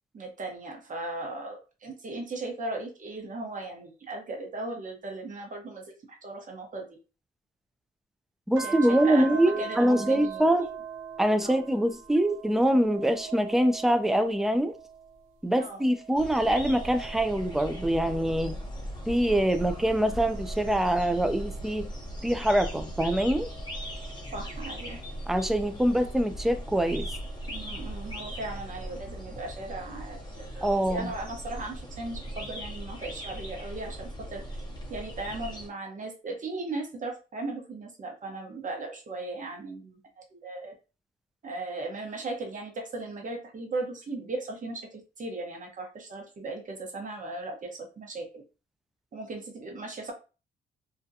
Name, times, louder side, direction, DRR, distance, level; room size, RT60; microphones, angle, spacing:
voice 1, 0.1-6.9 8.6-10.7 11.4-11.6 15.6-15.8 24.3-25.0 27.5-34.4 34.9-40.0 40.3-40.7 41.4-48.4 49.1-50.1, right 2 dB, 40° right, 0.9 m, -37 dB
voice 2, 8.5-10.7 11.2-14.7 15.4-18.6 19.1-21.9 22.2-23.5 25.3-27.1 30.6-31.1, right 1 dB, ahead, 0.3 m, -24 dB
sound 1, 8.6-15.3 15.7-18.6 19.2-22.0 22.7-25.2 26.5-27.6, right 7 dB, 90° right, 0.7 m, -43 dB
sound 2, 16.1-35.7, equal, 20° left, 0.8 m, -38 dB
2.5 x 2.2 x 2.6 m
cardioid pair, 90°, 20 cm